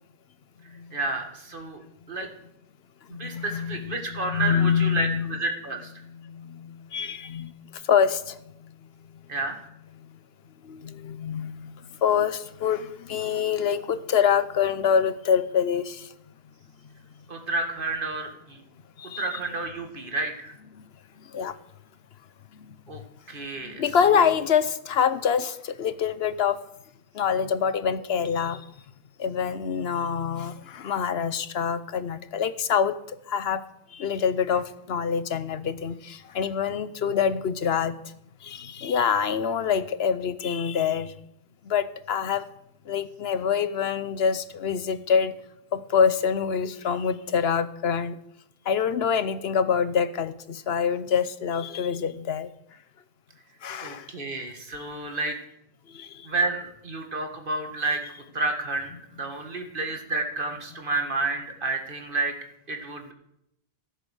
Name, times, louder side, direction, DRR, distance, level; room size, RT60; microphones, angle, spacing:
voice 1, 0.9-1.8 2.1-2.3 3.2-5.9 9.3-9.6 17.3-18.6 19.2-20.5 22.9-23.0 23.3-23.8 53.8-55.4 56.3-58.0 58.3-62.3 62.7-63.1, right 3 dB, 60° right, 4 dB, 1.8 m, -30 dB
voice 2, 3.1-5.4 6.0-8.8 9.1-9.2 9.9-10.1 10.6-11.7 12.0-16.1 19.0-19.4 20.8-20.9 21.3-21.6 22.6-22.7 23.6-26.6 27.1-28.6 29.2-33.0 33.3-33.6 33.9-37.9 38.4-41.1 41.7-42.5 42.9-45.3 45.7-48.2 48.7-52.5 53.6-54.1 55.9-56.3, left 7 dB, 80° left, 13 dB, 1.1 m, -26 dB
14.5 x 8.2 x 6.4 m, 0.79 s
omnidirectional pair, 1.0 m